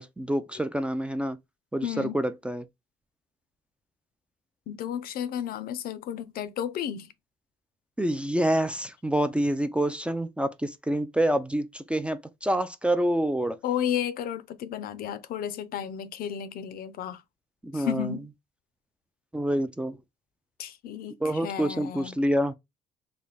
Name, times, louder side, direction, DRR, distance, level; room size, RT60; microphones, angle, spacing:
voice 1, 0.0-1.4 1.7-2.6 8.0-13.6 17.6-18.1 19.3-20.0 21.2-22.5, right 1 dB, 5° right, 0.4 m, -27 dB
voice 2, 1.8-2.2 4.7-7.1 13.6-17.2 17.7-18.3 20.6-22.2, left 9 dB, 60° left, 0.5 m, -33 dB
3.3 x 2.2 x 3.9 m
cardioid pair, 110°, 17 cm